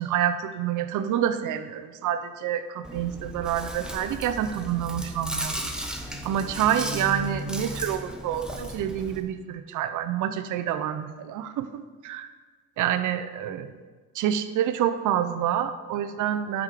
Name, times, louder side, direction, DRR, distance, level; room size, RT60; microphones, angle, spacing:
voice 1, 0.0-5.7 6.2-12.3 12.8-13.7 14.1-16.6, right 10 dB, 80° right, 11 dB, 0.7 m, -27 dB
Chewing mastication, 2.8-9.2, right 1 dB, 5° right, 1.2 m, -35 dB
10.5 x 6.0 x 5.0 m, 1.4 s
cardioid pair, 90°, 30 cm